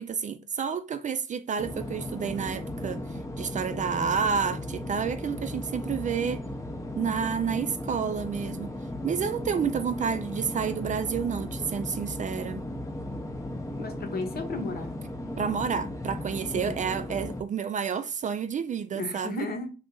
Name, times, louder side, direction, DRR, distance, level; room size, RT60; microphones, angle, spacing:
voice 1, 0.0-6.4 7.0-8.7 9.0-12.6 15.4-19.5, right 7 dB, 40° right, 0.4 m, -30 dB
sound 1, 1.6-17.4, left 1 dB, 15° left, 0.6 m, -36 dB
voice 2, 13.8-14.9 16.5-16.8 18.9-19.7, left 3 dB, 50° left, 1.0 m, -34 dB
2.9 x 2.5 x 3.6 m
cardioid pair, 90°, 20 cm